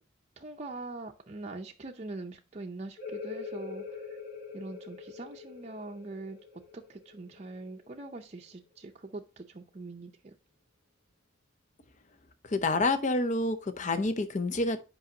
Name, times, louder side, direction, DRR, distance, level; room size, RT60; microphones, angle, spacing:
voice 1, 0.4-4.2 4.5-10.3, right 2 dB, 35° right, 0.5 m, -43 dB
sound 1, 3.0-8.4, left 5 dB, 55° left, 1.8 m, -43 dB
voice 2, 12.4-14.8, left 2 dB, 40° left, 0.6 m, -28 dB
8.3 x 5.3 x 2.8 m
head